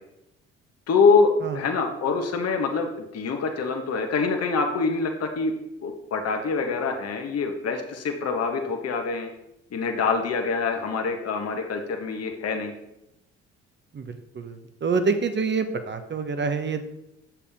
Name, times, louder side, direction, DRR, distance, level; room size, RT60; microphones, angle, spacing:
voice 1, 0.9-5.5 5.8-9.3 9.7-12.7, left 4 dB, 45° left, 3 dB, 1.3 m, -25 dB
voice 2, 13.9-16.9, right 4 dB, 30° right, 9 dB, 1.0 m, -27 dB
7.2 x 6.9 x 3.6 m, 0.85 s
hypercardioid pair, 55°, 34 cm